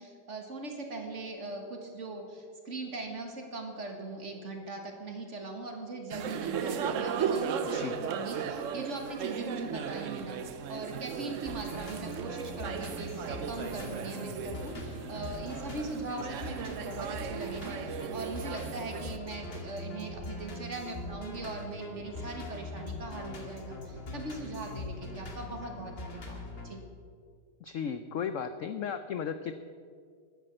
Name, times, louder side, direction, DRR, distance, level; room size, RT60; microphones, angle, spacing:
voice 1, 0.0-26.8, right 2 dB, 40° right, 3 dB, 1.9 m, -40 dB
sound 1, 6.1-19.2, right 7 dB, 60° right, 0.8 m, -36 dB
voice 2, 7.7-8.0 27.6-29.5, left 7 dB, 70° left, 10 dB, 0.7 m, -35 dB
sound 2, 11.4-26.7, left 1 dB, 35° left, 1.9 m, -42 dB
12.0 x 10.0 x 7.6 m, 2.1 s
omnidirectional pair, 2.0 m